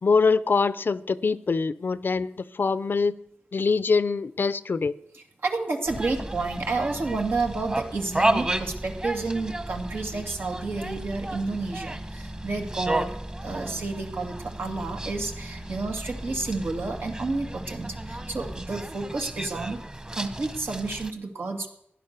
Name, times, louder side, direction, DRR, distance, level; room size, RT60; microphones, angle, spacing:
voice 1, 0.0-2.3 2.5-3.1 3.5-5.0, left 4 dB, 60° left, 0.6 m, -23 dB
voice 2, 5.1-13.2 13.4-19.8 20.1-21.7, right 3 dB, 75° right, 2.3 m, -30 dB
sound 1, 5.9-21.1, right 1 dB, 25° right, 1.4 m, -33 dB
16.0 x 11.0 x 6.7 m
wide cardioid pair, 85°, 4 cm